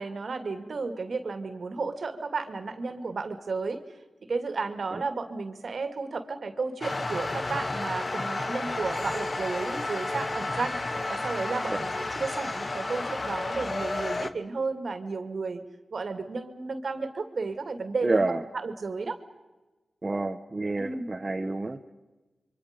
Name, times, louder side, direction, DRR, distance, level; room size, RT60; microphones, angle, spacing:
voice 1, 0.0-3.8 4.3-10.8 11.1-15.6 15.9-19.2 20.8-21.1, right 4 dB, 70° right, 8 dB, 2.3 m, -33 dB
sound 1, 6.8-14.3, left 2 dB, 45° left, 1.3 m, -32 dB
voice 2, 18.0-18.4 20.0-21.8, right 2 dB, 35° right, 5 dB, 1.2 m, -28 dB
27.5 x 24.0 x 5.2 m, 1.1 s
cardioid pair, 50°, 0 cm